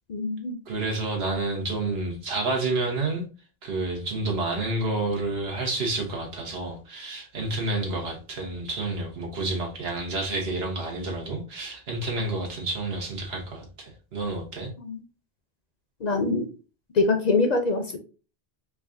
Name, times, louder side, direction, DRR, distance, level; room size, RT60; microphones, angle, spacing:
voice 1, 0.1-0.6 14.8-15.0 16.0-16.5 16.9-18.0, left 3 dB, 50° left, 0.6 m, -24 dB
voice 2, 0.7-3.3 3.6-14.7, right 2 dB, 80° right, 1.3 m, -29 dB
4.8 x 2.3 x 2.5 m
omnidirectional pair, 1.0 m